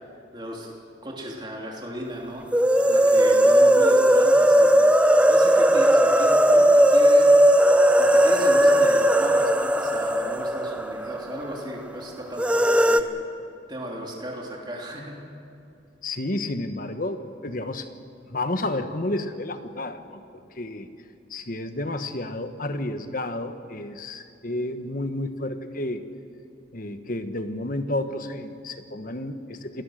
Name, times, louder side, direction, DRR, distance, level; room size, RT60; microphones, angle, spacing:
voice 1, 0.3-0.7 1.0-2.6 2.9-4.8 5.3-7.3 8.0-13.1 13.7-15.2, equal, 25° right, -2 dB, 3.2 m, -35 dB
sound 1, 2.5-11.4 11.6-11.7 12.4-13.0, right 1 dB, 5° right, 0.6 m, -17 dB
voice 2, 16.0-17.9 18.3-20.2 20.5-20.9 21.3-26.0 26.7-29.8, left 1 dB, 45° left, 9 dB, 1.2 m, -31 dB
28.0 x 19.5 x 6.6 m, 2.7 s
head